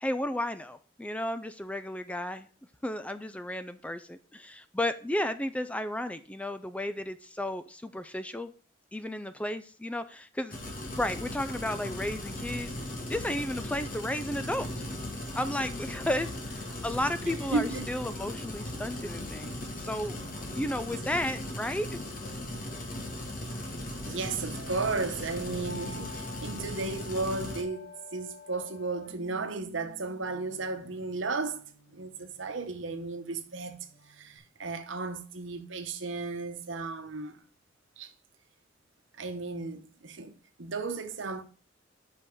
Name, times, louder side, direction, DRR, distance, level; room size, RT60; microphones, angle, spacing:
voice 1, 0.0-2.5 2.8-8.5 8.9-10.5 11.0-12.7 13.1-14.7 15.3-21.9, left 1 dB, 5° left, 0.4 m, -33 dB
sound 1, 10.5-27.6, left 1 dB, 45° left, 1.7 m, -38 dB
voice 2, 17.5-17.9 20.5-20.6 24.1-31.6 31.9-37.4 38.0-38.1 39.2-40.3 40.6-41.4, right 3 dB, 70° right, 1.1 m, -34 dB
sound 2, 18.4-34.4, left 3 dB, 65° left, 3.4 m, -52 dB
5.7 x 5.3 x 6.2 m
head